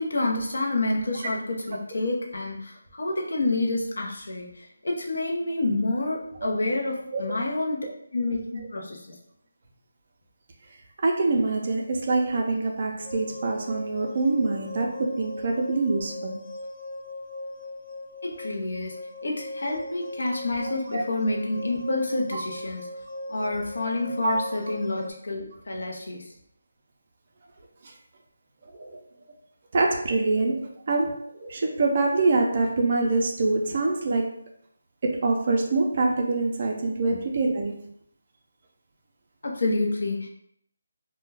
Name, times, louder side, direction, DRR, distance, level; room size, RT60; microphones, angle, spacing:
voice 1, 0.0-7.8 8.1-9.1 18.2-19.0 19.2-22.9 23.3-26.3 39.4-40.3, left 2 dB, 70° left, 0 dB, 0.7 m, -28 dB
voice 2, 11.0-16.4 20.9-21.0 22.3-22.4 24.2-24.5 27.8-27.9 28.7-29.0 29.7-34.4 35.0-37.8, right 3 dB, 35° right, 1 dB, 0.4 m, -25 dB
sound 1, 13.0-25.1, left 1 dB, 25° left, 0.6 m, -39 dB
2.2 x 2.1 x 3.2 m, 0.70 s
figure-of-eight pair, 170°, 0 cm